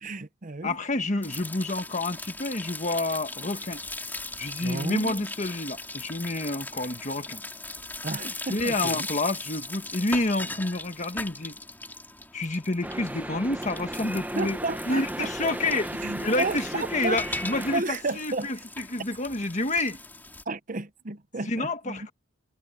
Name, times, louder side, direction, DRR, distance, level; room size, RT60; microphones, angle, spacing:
voice 1, 0.0-0.8 4.6-5.2 8.0-9.1 14.1-15.6 16.0-17.4 17.7-18.5 20.5-22.1, right 3 dB, 40° right, 0.8 m, -33 dB
voice 2, 0.6-3.8 4.4-7.4 8.2-11.6 12.3-14.6 14.8-15.9 16.2-20.0 21.5-22.1, left 2 dB, 35° left, 1.7 m, -29 dB
sound 1, 1.2-20.4, left 2 dB, 10° left, 4.5 m, -39 dB
sound 2, 12.8-17.8, right 1 dB, 10° right, 0.9 m, -35 dB
head